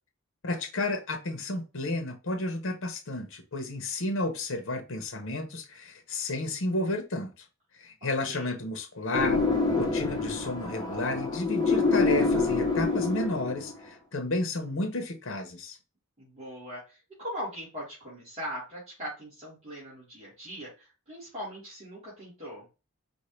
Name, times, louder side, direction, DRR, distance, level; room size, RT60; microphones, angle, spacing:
voice 1, 0.4-7.3 7.8-9.4 9.8-15.8, left 2 dB, 65° left, 0.9 m, -32 dB
voice 2, 8.0-8.6 16.2-22.7, equal, 30° right, 2.4 m, -40 dB
sound 1, 9.1-13.8, left 4 dB, 20° left, 1.0 m, -26 dB
5.1 x 2.7 x 3.2 m
head